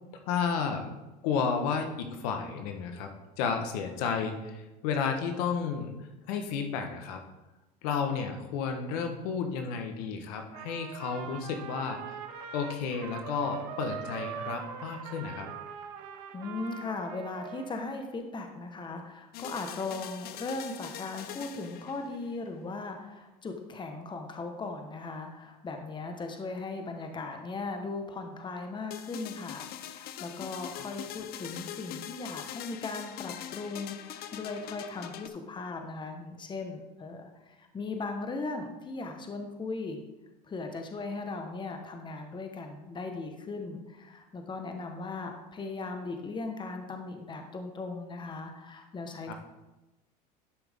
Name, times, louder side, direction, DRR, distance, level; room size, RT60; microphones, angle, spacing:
voice 1, 0.3-0.9 1.2-3.1 3.4-5.9 6.3-7.2 7.8-12.2 12.5-15.5 49.3-49.4, left 6 dB, 70° left, 5 dB, 1.3 m, -32 dB
Trumpet, 10.5-17.9, right 8 dB, 75° right, 1.1 m, -42 dB
voice 2, 16.3-40.0 40.4-49.3, left 3 dB, 25° left, 5 dB, 1.3 m, -38 dB
sound 1, 19.3-22.4 28.9-35.3, left 11 dB, 50° left, 0.7 m, -42 dB
11.5 x 5.9 x 3.6 m, 1.0 s
hypercardioid pair, 95°, 20 cm